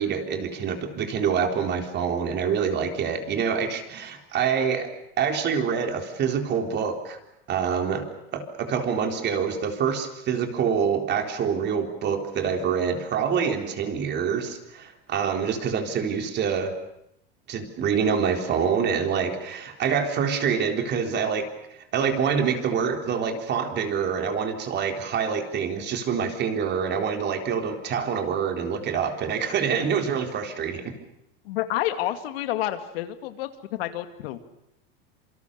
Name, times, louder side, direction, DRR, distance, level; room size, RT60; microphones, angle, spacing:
voice 1, 0.0-4.9 5.2-7.2 7.5-8.0 8.3-16.7 17.5-21.5 21.9-30.9, right 6 dB, 35° right, 5 dB, 4.0 m, -26 dB
voice 2, 31.4-34.4, left 14 dB, 80° left, 9 dB, 2.4 m, -29 dB
27.0 x 25.0 x 6.9 m, 0.79 s
supercardioid pair, 135°, 29 cm